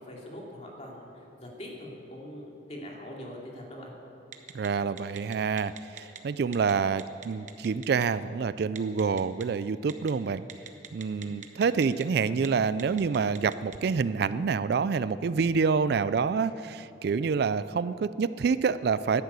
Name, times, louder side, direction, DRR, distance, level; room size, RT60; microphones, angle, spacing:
voice 1, 0.0-3.9 11.2-11.3, left 1 dB, 35° left, -2 dB, 2.7 m, -43 dB
Telephone, 4.3-4.7 5.0-6.2 6.5-6.7 7.0-8.0 8.8-9.4 9.9-10.1 10.5-12.0 12.3-12.5 12.8-13.8, right 8 dB, 40° right, 1.0 m, -42 dB
voice 2, 4.5-10.4 10.9-19.2, right 5 dB, 60° right, 15 dB, 0.3 m, -27 dB
12.0 x 11.5 x 8.2 m, 2.8 s
head